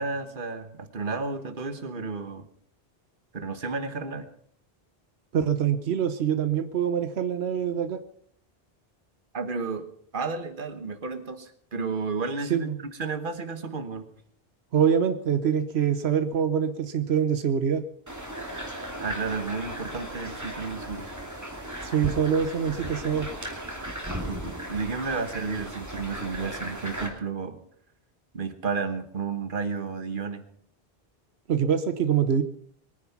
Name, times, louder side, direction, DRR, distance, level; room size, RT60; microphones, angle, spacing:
voice 1, 0.0-2.5 3.3-4.3 9.3-9.9 10.1-12.7 13.0-14.1 19.0-21.1 24.2-27.6 28.3-30.4, right 4 dB, 55° right, 9 dB, 1.5 m, -32 dB
voice 2, 5.3-8.0 12.5-12.8 14.7-17.8 21.8-23.3 31.5-32.4, right 8 dB, 85° right, 10 dB, 1.1 m, -24 dB
sound 1, 18.1-27.1, right 1 dB, 15° right, 2.7 m, -36 dB
22.0 x 9.8 x 5.9 m, 0.63 s
omnidirectional pair, 1.0 m